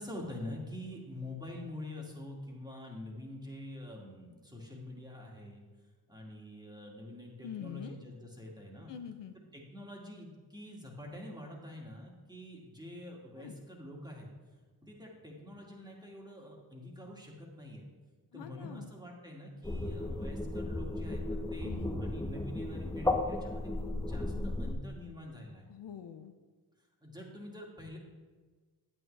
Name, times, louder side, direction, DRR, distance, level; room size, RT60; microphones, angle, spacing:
voice 1, 0.0-5.6 6.1-8.9 9.5-14.3 14.8-17.9 18.3-21.7 22.0-25.7 27.0-28.0, left 1 dB, 10° right, -2 dB, 2.2 m, -46 dB
voice 2, 7.4-8.0 8.9-9.3 13.4-13.6 18.3-18.9 21.6-21.9 25.7-26.3, left 9 dB, 80° left, 8 dB, 0.6 m, -44 dB
sound 1, 19.6-24.7, left 2 dB, 10° left, 0.9 m, -34 dB
8.7 x 8.6 x 3.3 m, 1.4 s
cardioid pair, 55°, 42 cm